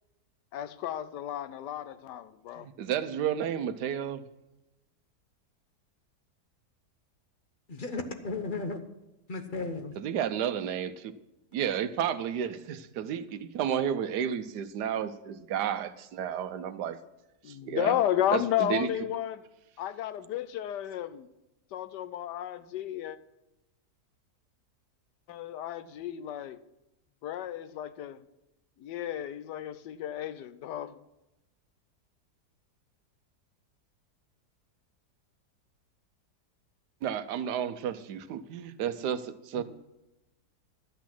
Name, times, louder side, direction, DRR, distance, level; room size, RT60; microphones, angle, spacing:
voice 1, 0.5-2.7 17.4-19.4 19.8-21.3 21.7-23.2 25.3-26.6 27.2-28.2 28.8-31.0, left 11 dB, 90° left, 1.3 m, -32 dB
voice 2, 2.6-4.2 10.0-11.1 11.5-17.0 17.5-18.0 18.3-18.9 37.0-39.6, right 9 dB, 80° right, 1.3 m, -32 dB
voice 3, 7.7-8.8 9.3-9.9 39.5-39.6, left 3 dB, 35° left, 0.9 m, -35 dB
12.0 x 8.3 x 6.0 m
omnidirectional pair, 1.8 m